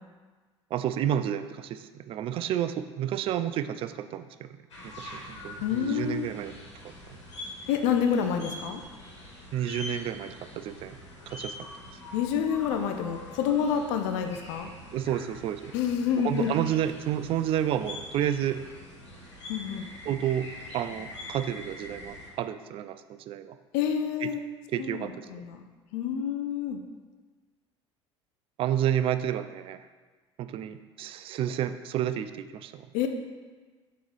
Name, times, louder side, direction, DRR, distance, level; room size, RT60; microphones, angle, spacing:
voice 1, 0.7-4.5 5.0-6.5 6.8-7.2 9.5-11.0 11.3-11.5 14.9-15.7 16.2-18.6 20.1-20.5 20.7-23.6 24.2-24.3 24.7-25.3 28.6-29.9 30.4-32.9, right 10 dB, 35° right, 11 dB, 0.4 m, -30 dB
sound 1, 4.7-22.3, left 1 dB, 75° left, 1.4 m, -44 dB
voice 2, 5.6-6.3 7.7-8.8 12.1-14.7 15.7-16.5 19.5-19.9 23.7-24.4 24.8-25.6 25.9-26.8 32.9-33.1, left 8 dB, 55° left, 6 dB, 0.6 m, -28 dB
7.0 x 3.1 x 5.5 m, 1.4 s
figure-of-eight pair, 65°, 15 cm